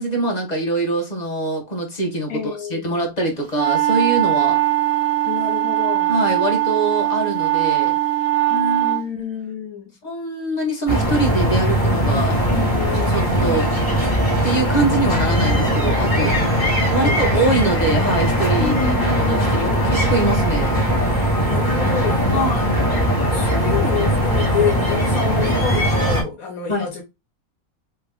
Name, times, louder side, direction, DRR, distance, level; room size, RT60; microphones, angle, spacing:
voice 1, 0.0-4.6 6.1-7.9 10.0-12.4 13.1-13.7 14.4-16.4 16.9-18.8 19.1-20.8 22.3-22.7 26.7-26.8, right 2 dB, 30° left, 1.2 m, -23 dB
voice 2, 2.3-2.9 5.2-6.1 8.5-9.9 12.5-13.2 16.9-17.6 18.6-19.9 20.9-21.0 21.4-22.5 22.9-23.0 23.3-27.0, left 6 dB, 75° left, 1.4 m, -27 dB
sound 1, 3.5-9.0, right 14 dB, 70° right, 1.2 m, -20 dB
sound 2, 10.9-26.2, equal, 15° left, 1.5 m, -19 dB
3.4 x 2.9 x 3.5 m
omnidirectional pair, 1.5 m